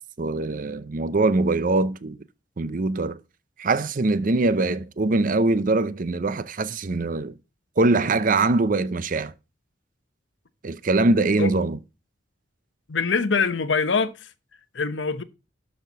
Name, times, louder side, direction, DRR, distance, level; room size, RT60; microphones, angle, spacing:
voice 1, 0.2-2.2 2.6-3.2 3.6-7.3 7.8-9.3 10.6-11.8, right 2 dB, 45° right, 0.6 m, -22 dB
voice 2, 12.9-14.1 14.7-15.2, left 4 dB, 70° left, 0.9 m, -23 dB
12.0 x 4.4 x 5.5 m
head